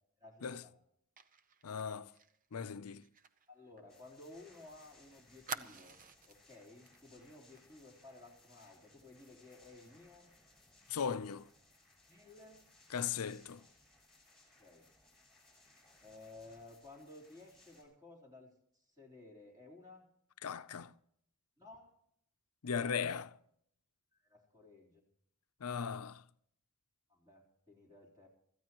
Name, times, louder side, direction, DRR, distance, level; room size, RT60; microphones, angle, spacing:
voice 1, 0.2-0.7 3.5-6.0 6.3-10.3 12.1-12.7 14.6-14.8 16.0-18.5 18.9-20.0 21.6-21.9 24.3-25.0 27.1-28.3, left 2 dB, 15° right, 3.7 m, -56 dB
Fire, 1.2-4.6 4.9-5.0 5.5-6.4 6.9-7.0 7.3-7.6, right 6 dB, 40° right, 0.8 m, -49 dB
voice 2, 1.6-2.1 2.5-3.0 10.9-11.5 12.9-13.6 20.4-20.9 22.6-23.3 25.6-26.2, left 6 dB, 90° left, 0.6 m, -38 dB
sound 1, 3.9-17.8, left 2 dB, 5° left, 6.1 m, -65 dB
25.0 x 14.5 x 3.1 m
head